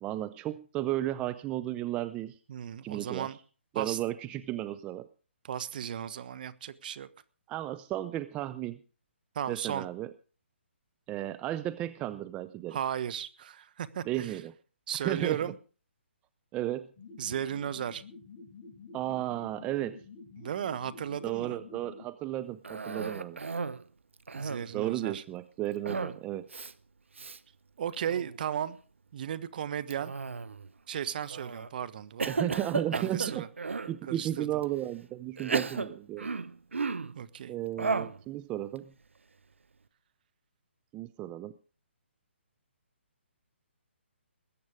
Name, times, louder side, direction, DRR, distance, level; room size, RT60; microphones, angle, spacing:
voice 1, 0.0-2.4 2.8-3.3 3.7-5.1 7.5-8.8 9.5-10.1 11.1-12.8 14.0-14.5 15.0-15.4 16.5-16.9 18.9-20.0 21.2-23.4 24.7-26.5 32.3-33.5 33.9-36.3 37.5-38.9 40.9-41.5, right 14 dB, 15° right, 0.6 m, -34 dB
voice 2, 2.5-3.4 3.7-4.0 5.4-7.1 9.3-9.8 12.7-14.4 14.9-15.5 17.2-18.0 20.4-21.6 24.3-25.2 27.8-28.8 29.1-30.1 30.9-32.3 32.9-33.5 34.1-34.5 37.1-37.5, right 9 dB, 45° right, 1.2 m, -35 dB
sound 1, 17.0-22.1, left 4 dB, 25° left, 7.2 m, -49 dB
Cough, 22.6-23.8 24.2-24.8 25.9-26.2 26.5-26.7 27.2-27.4 27.9-28.4 29.9-30.7 31.3-31.7 32.2-34.0 34.6-34.7 35.4-37.2 37.8-38.2, right 4 dB, 80° right, 1.0 m, -34 dB
20.5 x 8.7 x 5.0 m
figure-of-eight pair, 145°, 7 cm